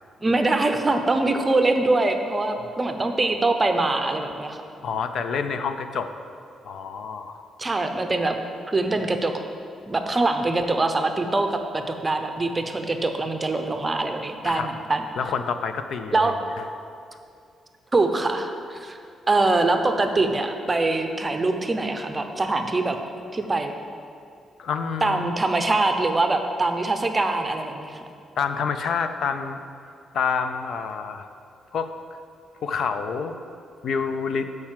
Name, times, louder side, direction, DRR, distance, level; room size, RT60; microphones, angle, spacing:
voice 1, 0.2-4.6 7.6-8.4 8.7-9.3 9.9-15.0 16.1-16.3 17.9-19.0 19.3-23.0 23.3-23.7 25.0-28.0, right 2 dB, 20° right, 6 dB, 0.6 m, -23 dB
voice 2, 4.8-6.1 6.6-7.4 14.4-14.7 15.2-16.6 24.6-25.3 28.4-29.6 30.1-31.3 31.7-31.9 32.6-33.4 33.8-34.5, left 6 dB, 60° left, 8 dB, 0.5 m, -28 dB
9.0 x 4.8 x 7.5 m, 2.4 s
cardioid pair, 145°, 0 cm